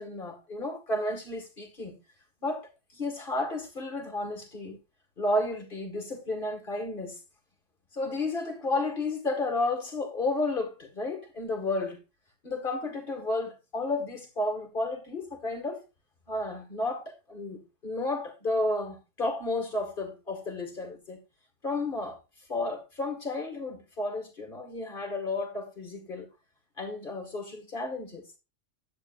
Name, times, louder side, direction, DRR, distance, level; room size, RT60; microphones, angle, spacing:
voice 1, 0.0-2.0 2.4-4.8 5.2-7.2 7.9-12.0 12.4-15.8 16.3-21.2 21.6-22.2 22.5-26.3 26.8-28.3, left 2 dB, 45° left, 2.2 m, -32 dB
10.5 x 8.7 x 2.6 m
omnidirectional pair, 1.3 m